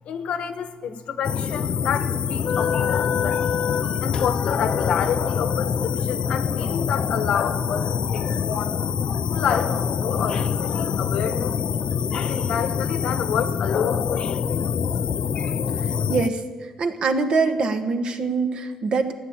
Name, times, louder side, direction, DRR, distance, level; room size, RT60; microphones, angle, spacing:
voice 1, 0.0-3.6 4.0-8.7 9.3-11.6 12.1-14.8, left 7 dB, 75° left, 10 dB, 1.2 m, -29 dB
sound 1, 1.2-16.3, left 7 dB, 50° left, 0.4 m, -25 dB
voice 2, 16.1-19.1, right 4 dB, 55° right, 7 dB, 1.4 m, -24 dB
15.5 x 9.9 x 8.8 m, 1.5 s
cardioid pair, 125°, 2 cm